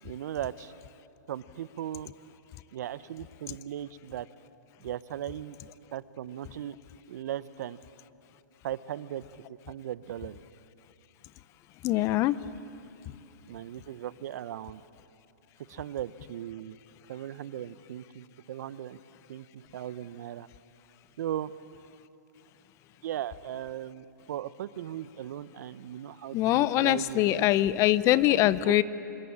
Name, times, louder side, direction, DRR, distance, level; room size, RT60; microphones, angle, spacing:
voice 1, 0.0-0.7 1.3-2.1 2.7-4.3 4.8-5.6 5.9-6.7 7.1-7.8 8.6-9.2 9.7-10.4 13.5-14.8 15.7-16.8 17.1-19.0 19.3-20.5 21.2-21.5 23.0-27.5 28.3-28.8, right 11 dB, 60° right, 16 dB, 0.9 m, -38 dB
voice 2, 11.8-12.4 26.3-28.8, left 15 dB, 30° left, 17 dB, 0.7 m, -23 dB
26.5 x 22.0 x 8.7 m, 2.9 s
hypercardioid pair, 135°, 10 cm